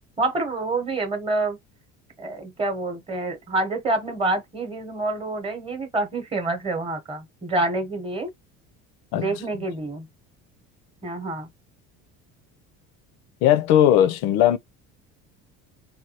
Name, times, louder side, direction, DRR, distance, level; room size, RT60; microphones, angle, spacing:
voice 1, 0.2-1.6 2.2-8.3 9.1-10.0 11.0-11.5, right 2 dB, 20° right, 0.8 m, -27 dB
voice 2, 13.4-14.6, left 11 dB, 80° left, 0.6 m, -18 dB
3.4 x 2.3 x 2.8 m
cardioid pair, 145°, 30 cm